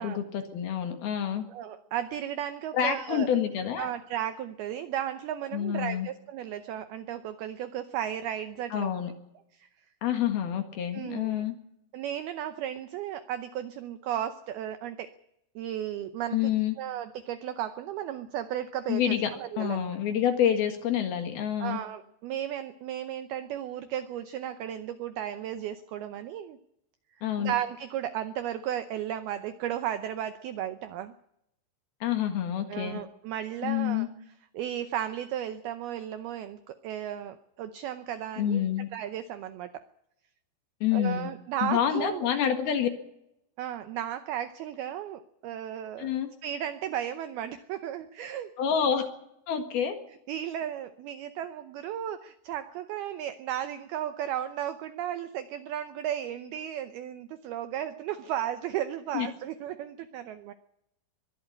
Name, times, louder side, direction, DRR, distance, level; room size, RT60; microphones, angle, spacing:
voice 1, 0.0-1.5 2.7-3.9 5.5-6.1 8.7-9.1 10.0-11.5 16.3-16.8 18.9-19.3 19.6-21.8 27.2-27.5 32.0-33.0 33.6-34.1 38.4-38.9 40.8-41.3 41.6-42.9 46.0-46.3 48.6-49.1 49.5-50.0 59.1-59.3, left 9 dB, 60° left, 7 dB, 3.2 m, -27 dB
voice 2, 1.5-3.3 3.8-9.0 9.5-9.7 10.9-11.4 11.9-15.1 15.6-16.5 16.8-20.0 21.6-26.6 27.2-31.1 32.7-34.1 34.5-38.6 38.9-39.9 40.9-42.3 43.6-46.1 46.4-48.5 50.3-60.5, right 11 dB, 80° right, 11 dB, 2.2 m, -34 dB
23.0 x 12.0 x 9.7 m, 0.80 s
omnidirectional pair, 5.5 m